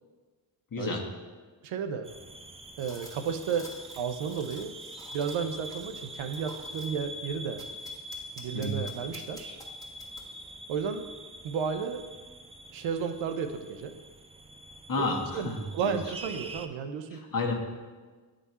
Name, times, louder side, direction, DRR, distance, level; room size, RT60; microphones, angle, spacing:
voice 1, 0.7-1.0 8.5-8.8 14.9-16.0 17.1-17.5, left 3 dB, 40° left, 0 dB, 1.4 m, -31 dB
voice 2, 1.6-2.1 2.8-4.8 5.1-7.6 8.4-9.6 10.7-11.1 11.4-12.0 12.7-14.0 14.9-17.3, right 6 dB, 70° right, 8 dB, 0.6 m, -33 dB
sound 1, 2.0-16.7, equal, 15° right, 0.4 m, -44 dB
sound 2, 2.8-7.0 7.6-10.5, equal, 5° left, 1.4 m, -50 dB
9.1 x 3.7 x 4.1 m, 1.4 s
supercardioid pair, 45°, 50 cm